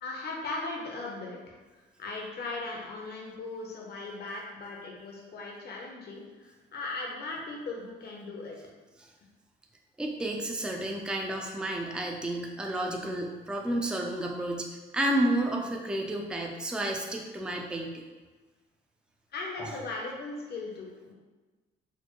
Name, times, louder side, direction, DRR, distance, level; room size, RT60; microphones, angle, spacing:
voice 1, 0.0-8.6 19.3-21.1, left 3 dB, 55° left, -1 dB, 0.8 m, -38 dB
voice 2, 10.0-18.0 19.6-19.7, right 1 dB, 5° right, 1 dB, 0.4 m, -31 dB
4.3 x 2.1 x 3.0 m, 1.3 s
cardioid pair, 90°, 20 cm